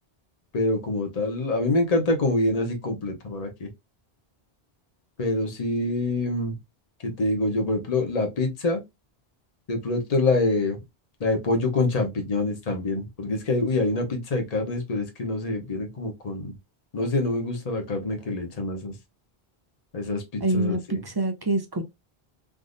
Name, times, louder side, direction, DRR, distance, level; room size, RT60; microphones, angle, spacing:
voice 1, 0.5-3.7 5.2-6.6 7.0-8.8 9.7-10.8 11.2-16.5 16.9-19.0 19.9-21.0, left 2 dB, 40° left, 0.9 m, -26 dB
voice 2, 20.4-21.8, right 2 dB, 30° right, 0.4 m, -26 dB
3.6 x 2.6 x 2.5 m
omnidirectional pair, 1.1 m